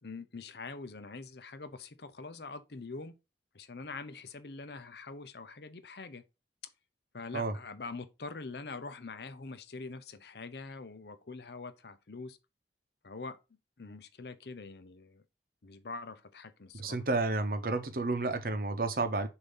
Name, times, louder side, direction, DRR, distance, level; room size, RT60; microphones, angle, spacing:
voice 1, 0.0-3.1 3.5-6.2 7.1-12.4 13.0-13.4 13.8-15.2 15.6-17.0, left 3 dB, 65° left, 0.7 m, -44 dB
voice 2, 16.7-19.3, right 3 dB, 55° right, 0.8 m, -31 dB
6.7 x 2.8 x 5.4 m
head